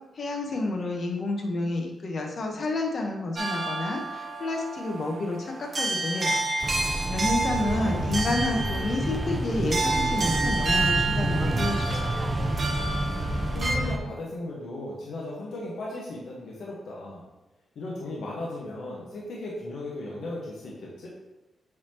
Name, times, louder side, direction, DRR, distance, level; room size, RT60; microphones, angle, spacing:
voice 1, 0.1-6.4 7.0-12.1, left 2 dB, 55° left, 1 dB, 1.1 m, -30 dB
sound 1, 3.4-13.8, right 3 dB, 40° right, 0.9 m, -30 dB
sound 2, 6.6-14.0, right 1 dB, 20° right, 0.6 m, -29 dB
voice 2, 7.7-8.1 13.5-17.2 17.7-21.1, left 2 dB, 80° left, -4 dB, 1.2 m, -36 dB
7.6 x 4.2 x 2.9 m, 1.1 s
cardioid pair, 90°, 0 cm